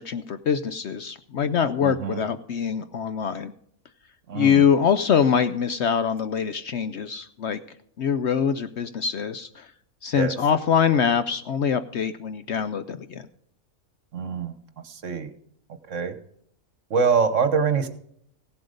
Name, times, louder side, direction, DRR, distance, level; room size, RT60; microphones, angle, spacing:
voice 1, 0.0-3.5 4.3-7.6 8.0-9.7 10.0-13.3, left 7 dB, 60° left, 11 dB, 0.7 m, -24 dB
voice 2, 1.8-2.2 4.3-4.6 10.1-10.3 14.1-14.5 14.8-15.3 15.9-16.1 16.9-17.9, right 5 dB, 60° right, 10 dB, 1.3 m, -24 dB
16.0 x 7.8 x 5.1 m, 0.69 s
omnidirectional pair, 1.5 m